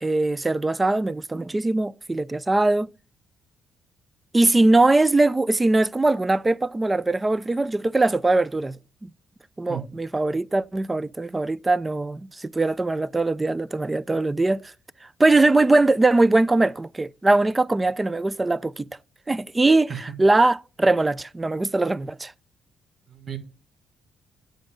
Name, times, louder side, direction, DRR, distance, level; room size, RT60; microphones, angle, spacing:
voice 1, 0.0-2.9 4.3-9.1 9.6-14.7 15.2-18.9 19.3-22.3, right 2 dB, 20° right, 0.3 m, -21 dB
voice 2, 9.7-9.8 19.9-20.1 23.1-23.4, right 8 dB, 45° right, 1.7 m, -33 dB
9.6 x 5.1 x 6.2 m
cardioid pair, 90°, 0 cm